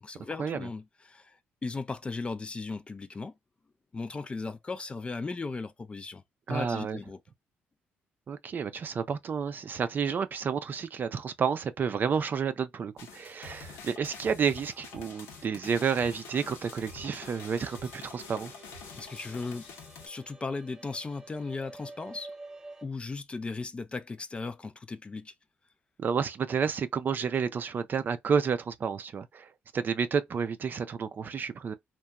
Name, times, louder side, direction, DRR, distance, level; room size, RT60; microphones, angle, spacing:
voice 1, 0.0-3.3 3.9-6.2 6.5-7.2 19.0-19.7 20.1-22.3 22.8-25.3, left 3 dB, 25° left, 0.3 m, -37 dB
voice 2, 6.5-7.0 8.3-18.5 26.0-29.5 29.7-31.7, right 6 dB, 45° right, 0.4 m, -30 dB
sound 1, 13.0-20.1, left 5 dB, 85° left, 0.8 m, -47 dB
sound 2, 14.5-22.9, right 2 dB, 10° right, 1.0 m, -51 dB
2.8 x 2.2 x 2.2 m
cardioid pair, 80°, 4 cm